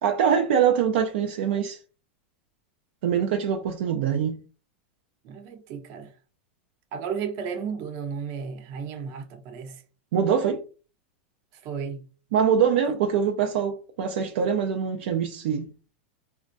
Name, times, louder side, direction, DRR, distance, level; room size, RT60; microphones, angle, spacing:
voice 1, 0.0-1.8 3.0-4.3 10.1-10.6 12.3-15.7, right 7 dB, 70° right, 0.4 m, -23 dB
voice 2, 5.2-6.1 6.9-9.7 11.6-12.0 12.7-12.9, right 6 dB, 50° right, 0.8 m, -34 dB
3.4 x 2.1 x 2.5 m
supercardioid pair, 135°, 6 cm